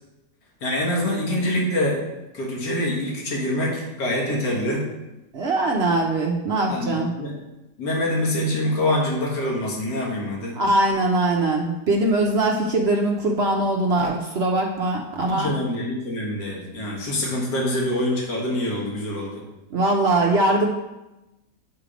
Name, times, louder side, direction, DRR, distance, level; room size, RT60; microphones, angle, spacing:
voice 1, 0.6-2.0 2.3-4.9 6.7-7.3 7.8-10.6 15.3-19.3, left 1 dB, 70° left, -3 dB, 1.9 m, -25 dB
voice 2, 5.3-7.1 10.5-15.5 19.7-20.7, right 2 dB, 65° right, 1 dB, 0.6 m, -21 dB
8.2 x 3.2 x 4.9 m, 0.99 s
omnidirectional pair, 1.8 m